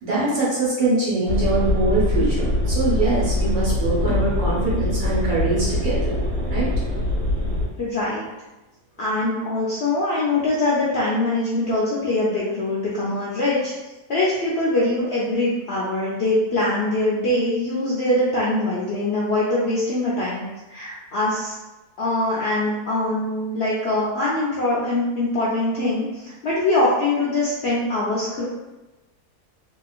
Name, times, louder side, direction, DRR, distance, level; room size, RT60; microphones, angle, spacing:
voice 1, 0.0-6.1 6.5-6.7, right 2 dB, 70° right, -8 dB, 1.7 m, -23 dB
sound 1, 1.3-7.7, left 1 dB, 90° right, 1.2 m, -23 dB
voice 2, 7.8-8.2 9.0-21.5 22.0-28.5, left 2 dB, 65° left, -7 dB, 0.6 m, -23 dB
2.9 x 2.8 x 2.4 m, 1.1 s
omnidirectional pair, 1.6 m